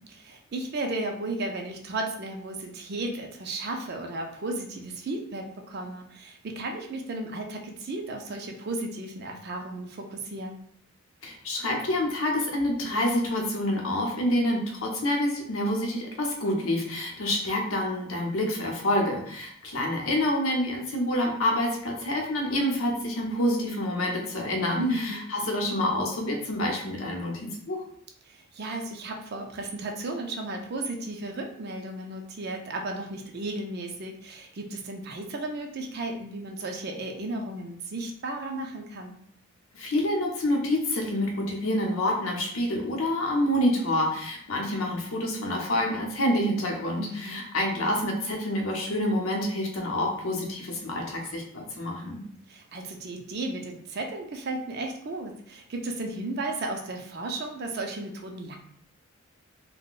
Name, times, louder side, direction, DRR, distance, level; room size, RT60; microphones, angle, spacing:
voice 1, 0.1-10.6 24.8-25.3 28.2-39.2 47.0-47.4 52.5-58.6, right 2 dB, 50° right, 2 dB, 0.4 m, -34 dB
voice 2, 11.2-27.8 39.7-52.2, left 1 dB, 75° left, 0 dB, 0.7 m, -27 dB
3.7 x 2.1 x 2.4 m, 0.66 s
head